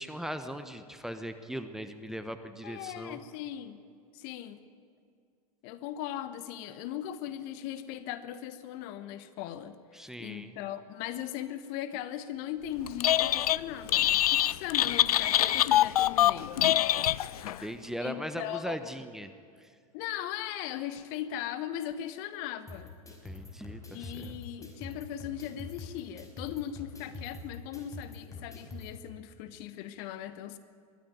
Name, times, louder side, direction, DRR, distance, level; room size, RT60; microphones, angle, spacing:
voice 1, 0.0-3.2 9.9-10.6 17.4-19.3 19.6-19.7 23.2-24.4, equal, ahead, 8 dB, 1.1 m, -39 dB
voice 2, 2.6-3.8 4.1-4.6 5.6-9.7 10.2-16.6 18.0-18.9 19.9-22.9 23.9-30.6, left 11 dB, 45° left, 12 dB, 1.2 m, -38 dB
Telephone, 12.9-13.6 13.9-17.6, left 13 dB, 70° left, 0.5 m, -24 dB
sound 1, 22.7-28.9, left 3 dB, 15° left, 5.0 m, -45 dB
22.0 x 13.0 x 9.4 m, 2.3 s
figure-of-eight pair, 95°, 20 cm